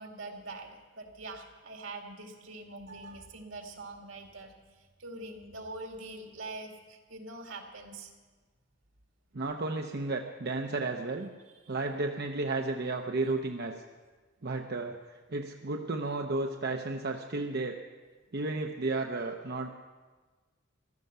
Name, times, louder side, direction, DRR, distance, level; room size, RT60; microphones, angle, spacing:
voice 1, 0.0-4.6 5.0-8.1, right 2 dB, 80° right, 3 dB, 2.2 m, -44 dB
voice 2, 9.3-11.3 11.7-13.7 14.4-17.8 18.3-19.7, right 3 dB, 55° right, 3 dB, 0.8 m, -33 dB
15.0 x 12.5 x 6.8 m, 1.4 s
head